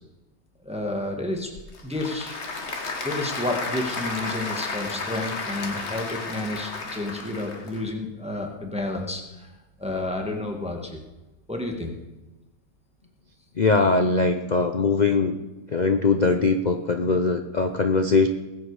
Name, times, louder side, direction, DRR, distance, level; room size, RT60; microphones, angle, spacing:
voice 1, 0.6-1.5 1.8-2.4 3.0-9.5 9.8-11.0 11.5-11.9, left 2 dB, 5° right, 2 dB, 1.4 m, -30 dB
Applause / Crowd, 1.4-7.8, left 3 dB, 45° left, 1.5 m, -33 dB
voice 2, 13.6-15.3 15.7-18.3, left 4 dB, 85° left, 6 dB, 0.4 m, -21 dB
20.0 x 8.0 x 4.9 m, 1.1 s
omnidirectional pair, 1.8 m